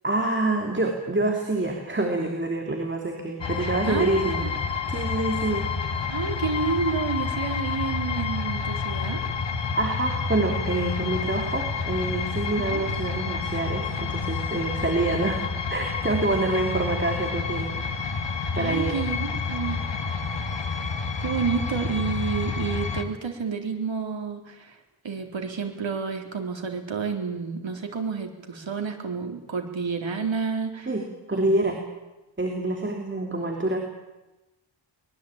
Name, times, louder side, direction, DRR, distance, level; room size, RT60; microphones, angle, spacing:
voice 1, 0.0-4.5 4.9-5.7 9.8-15.4 15.7-17.9 18.5-19.0 30.9-31.8 32.4-33.8, right 2 dB, 25° right, 2 dB, 3.1 m, -26 dB
sound 1, 3.4-23.1, left 5 dB, 60° left, 2.1 m, -29 dB
voice 2, 3.6-4.1 4.4-4.5 6.1-9.2 12.6-12.8 18.5-19.8 21.2-24.8 25.0-30.9 31.3-31.7, right 5 dB, 70° right, 3 dB, 3.8 m, -30 dB
24.0 x 21.0 x 8.9 m, 1.0 s
wide cardioid pair, 125°, 48 cm